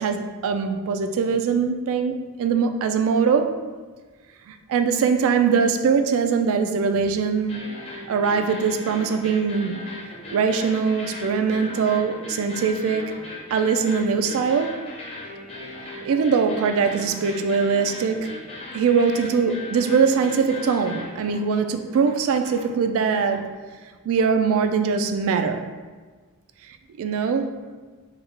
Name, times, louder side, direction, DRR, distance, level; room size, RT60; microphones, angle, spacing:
voice 1, 0.0-3.6 4.5-7.6 8.1-9.8 10.3-13.1 13.5-14.7 16.0-18.3 18.7-23.4 24.1-25.6 27.0-27.5, right 5 dB, 65° right, 8 dB, 0.3 m, -22 dB
sound 1, 7.4-23.5, left 2 dB, 25° left, 0.7 m, -38 dB
3.5 x 2.3 x 3.2 m, 1.4 s
head